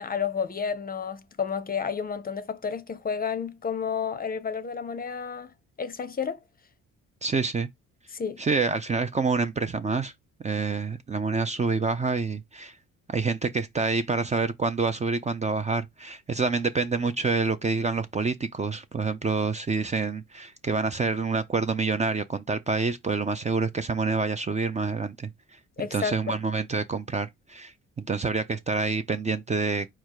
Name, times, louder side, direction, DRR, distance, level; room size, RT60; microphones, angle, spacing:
voice 1, 0.0-6.4 8.1-8.4 25.8-26.4, left 6 dB, 30° left, 0.6 m, -31 dB
voice 2, 7.2-7.7 8.4-10.1 10.4-12.8 13.1-25.3 25.9-29.9, right 4 dB, 25° right, 0.4 m, -27 dB
4.6 x 2.4 x 4.5 m
cardioid pair, 90°, 30 cm